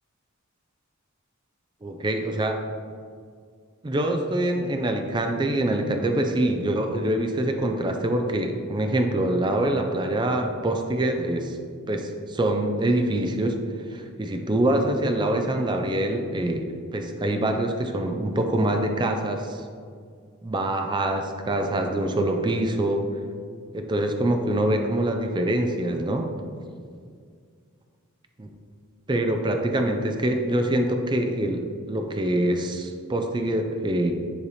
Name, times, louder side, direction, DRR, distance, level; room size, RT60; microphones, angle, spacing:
voice 1, 1.8-2.6 3.8-11.6 11.9-13.6 13.9-19.6 20.4-23.1 23.7-26.3 28.4-28.5 29.1-34.1, right 1 dB, 20° right, 4 dB, 0.4 m, -25 dB
9.8 x 3.3 x 4.1 m, 2.1 s
head